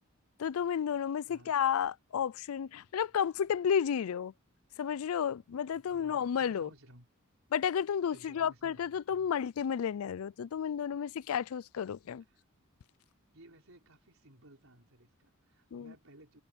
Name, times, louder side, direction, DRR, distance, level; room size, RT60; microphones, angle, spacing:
voice 1, 0.4-4.3 4.8-6.7 7.5-12.2 15.7-15.9, left 8 dB, 75° left, 0.4 m, -32 dB
voice 2, 5.7-7.1 8.1-8.9 12.2-12.4 13.3-16.4, right 1 dB, 70° right, 5.2 m, -58 dB
head